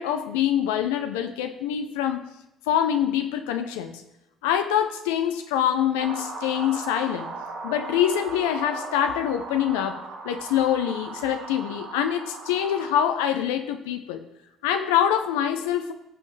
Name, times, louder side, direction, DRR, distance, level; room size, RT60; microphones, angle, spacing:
voice 1, 0.0-2.2 2.7-4.0 4.4-7.3 7.6-14.2 14.6-15.9, left 10 dB, 85° left, 7 dB, 0.6 m, -25 dB
sound 1, 6.0-13.1, right 4 dB, 85° right, 2.9 m, -37 dB
16.5 x 6.3 x 3.3 m, 0.88 s
supercardioid pair, 70°, 0 cm